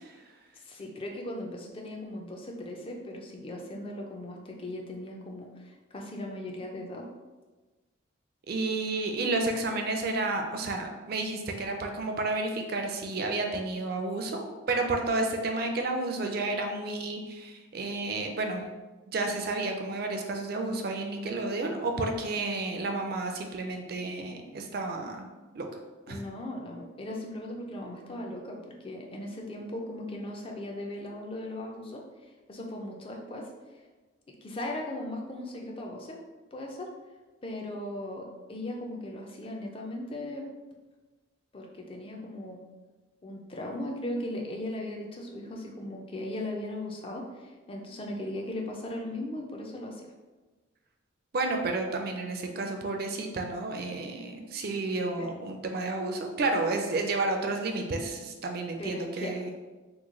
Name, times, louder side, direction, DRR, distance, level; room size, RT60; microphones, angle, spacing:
voice 1, 0.5-7.1 26.1-33.5 34.4-36.2 36.5-36.9 37.4-40.5 41.5-42.6 43.2-50.1 55.2-55.3 58.8-59.3, left 1 dB, 25° left, 1 dB, 0.4 m, -38 dB
voice 2, 8.5-18.6 19.1-25.3 25.5-25.7 26.1-26.2 51.3-59.5, right 2 dB, 50° right, 4 dB, 0.4 m, -31 dB
3.0 x 2.2 x 3.7 m, 1.2 s
head